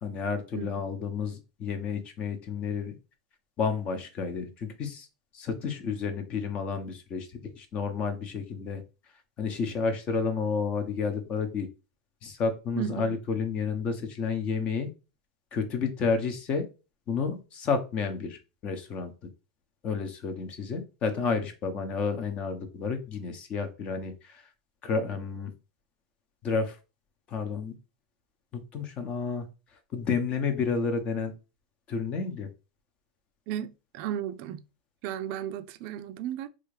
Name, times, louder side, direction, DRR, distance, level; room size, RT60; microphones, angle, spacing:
voice 1, 0.0-2.9 3.6-5.1 5.3-7.3 7.6-8.8 9.4-11.7 12.2-14.9 15.5-16.7 17.1-19.1 19.8-24.4 24.8-25.5 26.4-26.8 27.3-27.7 28.5-29.5 29.9-31.3 31.9-32.5, left 5 dB, 35° left, 0.8 m, -30 dB
voice 2, 12.8-13.2 33.5-34.6 35.0-36.5, right 10 dB, 50° right, 0.4 m, -34 dB
3.3 x 2.5 x 3.2 m
supercardioid pair, 130°, 3 cm